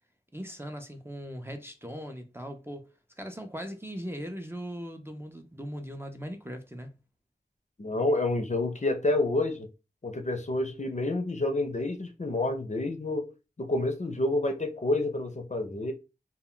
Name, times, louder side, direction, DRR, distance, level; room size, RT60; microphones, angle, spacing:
voice 1, 0.3-2.9 3.2-6.9, equal, 15° right, 0.5 m, -39 dB
voice 2, 7.8-9.7 10.0-13.3 13.6-15.9, left 2 dB, 40° left, 0.5 m, -28 dB
2.1 x 2.1 x 3.7 m
wide cardioid pair, 45°, 18 cm